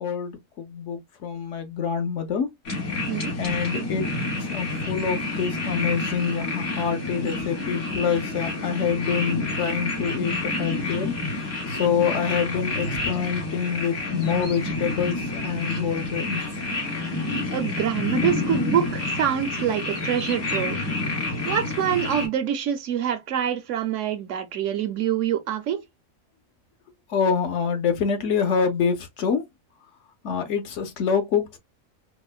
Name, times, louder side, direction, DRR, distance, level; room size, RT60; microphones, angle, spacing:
voice 1, 0.0-2.5 3.4-4.1 4.4-11.1 11.7-16.4 27.1-29.4 30.2-31.6, left 6 dB, 65° left, 0.9 m, -26 dB
sound 1, 2.6-22.3, left 2 dB, 85° left, 2.1 m, -29 dB
voice 2, 17.5-20.8 21.5-25.8, right 9 dB, 70° right, 0.9 m, -25 dB
4.2 x 2.1 x 2.3 m
omnidirectional pair, 1.5 m